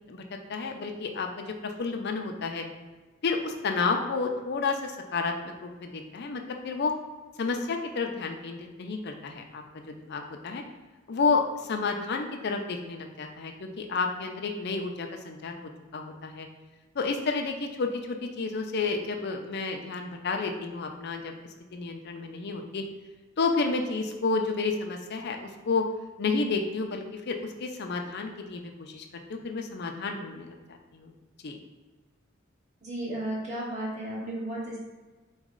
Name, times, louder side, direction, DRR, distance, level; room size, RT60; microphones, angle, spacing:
voice 1, 0.5-2.6 3.2-6.9 7.4-10.6 11.1-15.6 15.9-16.5 17.0-21.3 21.7-22.8 23.4-25.9 26.2-29.0 29.3-30.5 30.9-31.1 31.4-31.6, left 4 dB, 55° left, 4 dB, 0.5 m, -31 dB
voice 2, 32.8-34.8, right 1 dB, 35° right, -6 dB, 1.3 m, -34 dB
4.2 x 3.1 x 3.7 m, 1.2 s
head